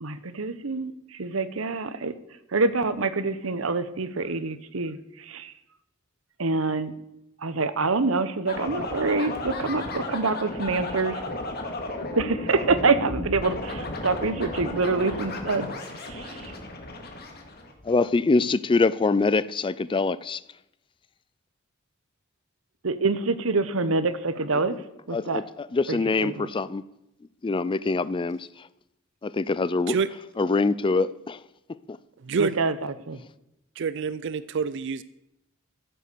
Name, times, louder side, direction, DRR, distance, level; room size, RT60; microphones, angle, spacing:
voice 1, 0.0-2.1 2.5-5.5 6.4-6.9 7.4-11.2 12.2-15.7 16.0-16.5 22.8-24.8 25.1-25.4 25.9-26.5 32.4-33.2, right 3 dB, 75° right, 0.9 m, -26 dB
sound 1, 8.5-18.0, left 2 dB, 50° left, 2.1 m, -34 dB
voice 2, 17.8-20.4 25.1-26.8 27.4-28.5 29.2-30.0 30.4-31.4 31.9-32.0, left 3 dB, 25° left, 0.4 m, -24 dB
voice 3, 33.8-35.0, right 5 dB, 60° right, 0.5 m, -27 dB
14.5 x 7.9 x 6.8 m
head